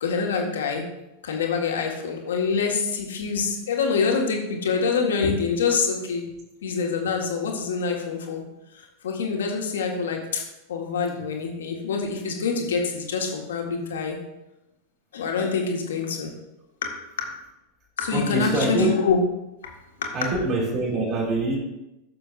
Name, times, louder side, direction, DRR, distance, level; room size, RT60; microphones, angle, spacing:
voice 1, 0.0-0.9 1.2-6.2 6.6-8.4 8.7-14.2 15.1-16.3 16.8-17.0 18.0-19.2 19.6-19.7 20.0-20.2, left 5 dB, 65° left, 1 dB, 1.6 m, -26 dB
voice 2, 18.1-18.9 20.1-21.6, right 2 dB, 40° right, -3 dB, 3.1 m, -24 dB
14.0 x 6.9 x 2.6 m, 0.94 s
figure-of-eight pair, 90°, 0 cm